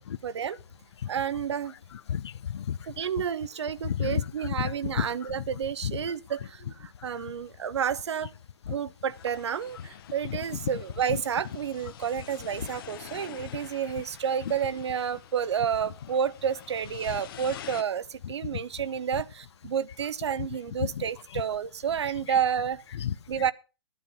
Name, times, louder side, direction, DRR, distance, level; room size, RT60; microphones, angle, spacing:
voice 1, 0.2-0.6 1.1-1.8 2.9-8.3 8.7-22.8 23.3-23.5, right 8 dB, 75° right, 0.8 m, -30 dB
voice 2, 1.9-2.8 3.8-5.4 5.8-6.0 8.7-8.8 10.3-10.4 11.1-11.2 12.6-12.7 17.1-17.2 18.2-18.6 20.8-21.0 21.3-21.4 22.9-23.4, left 9 dB, 75° left, 0.6 m, -32 dB
sound 1, 9.1-17.8, left 11 dB, 55° left, 1.0 m, -47 dB
12.5 x 9.5 x 5.3 m
hypercardioid pair, 140°, 14 cm